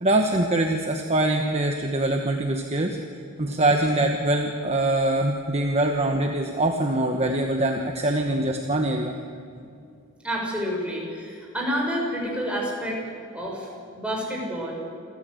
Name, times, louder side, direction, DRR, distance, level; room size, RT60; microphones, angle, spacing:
voice 1, 0.0-3.0 3.4-9.2, right 1 dB, 30° right, 3 dB, 1.2 m, -23 dB
voice 2, 10.2-13.0 13.3-14.8, equal, 5° right, -2 dB, 5.6 m, -29 dB
28.0 x 14.5 x 7.9 m, 2.4 s
head